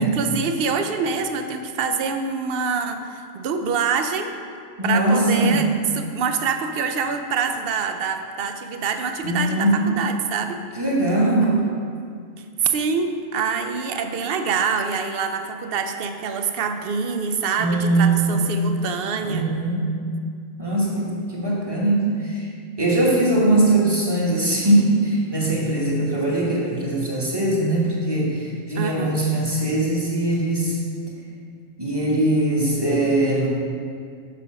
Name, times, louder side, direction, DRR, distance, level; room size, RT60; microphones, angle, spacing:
voice 1, 0.2-4.3 4.8-5.7 6.0-10.6 12.6-19.5 28.8-29.2, right 5 dB, 60° right, 7 dB, 0.7 m, -25 dB
voice 2, 4.8-5.7 9.2-10.0 10.7-11.7 17.6-18.4 19.2-19.9 20.6-22.5 22.8-30.8 31.8-33.5, right 2 dB, 20° right, -5 dB, 1.4 m, -21 dB
6.7 x 5.0 x 6.3 m, 2.2 s
omnidirectional pair, 1.3 m